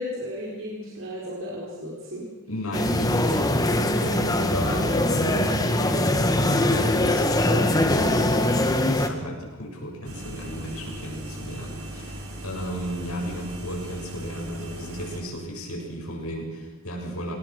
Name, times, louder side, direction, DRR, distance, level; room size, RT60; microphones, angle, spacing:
voice 1, 0.0-2.3, left 1 dB, 60° right, -4 dB, 4.5 m, -34 dB
voice 2, 2.5-17.4, equal, 85° left, 0 dB, 7.5 m, -34 dB
sound 1, 2.7-9.1, left 1 dB, 15° left, 1.5 m, -22 dB
sound 2, 10.0-15.2, right 1 dB, 75° right, 5.6 m, -38 dB
26.5 x 19.0 x 6.4 m, 1.2 s
head